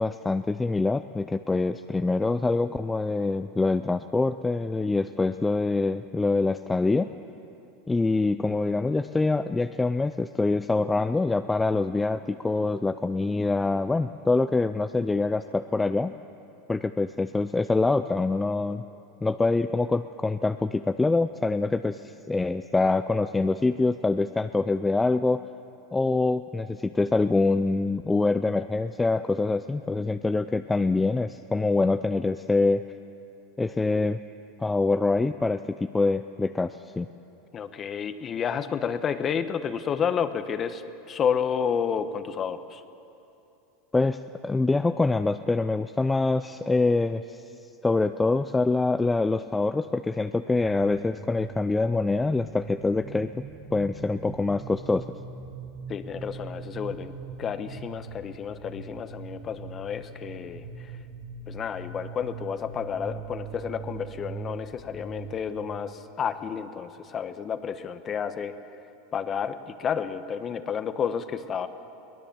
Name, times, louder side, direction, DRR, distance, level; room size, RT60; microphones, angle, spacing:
voice 1, 0.0-7.1 7.9-16.1 16.7-18.8 19.2-25.4 25.9-32.8 33.6-34.2 34.6-37.1 43.9-47.4 47.8-53.3 53.7-55.0, left 3 dB, 10° left, 10 dB, 0.5 m, -25 dB
voice 2, 37.5-40.8 41.1-42.8 55.9-57.1 57.4-60.6 61.5-68.5 69.1-71.7, left 7 dB, 30° left, 11 dB, 1.2 m, -30 dB
sound 1, 50.6-66.5, right 4 dB, 35° right, 5.3 m, -42 dB
23.0 x 18.5 x 7.2 m, 2.7 s
supercardioid pair, 110°, 0 cm